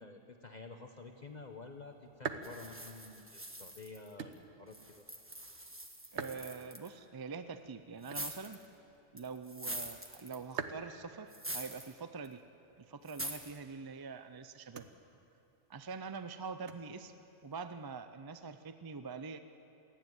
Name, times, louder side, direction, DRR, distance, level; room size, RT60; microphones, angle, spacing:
voice 1, 0.0-4.3 4.6-5.0, left 3 dB, 40° left, 4 dB, 1.0 m, -50 dB
sound 1, 1.0-18.0, right 6 dB, 70° right, 1.2 m, -50 dB
sound 2, 2.4-4.3 4.7-6.9 8.0-8.6 9.2-10.6 11.3-11.9 12.2-12.3 13.1-13.6, right 1 dB, 10° right, 1.3 m, -44 dB
voice 2, 6.1-8.6 9.1-12.4 12.8-14.9 15.7-17.1 17.4-19.4, right 5 dB, 35° right, 10 dB, 0.3 m, -44 dB
27.0 x 10.0 x 9.4 m, 2.8 s
omnidirectional pair, 1.2 m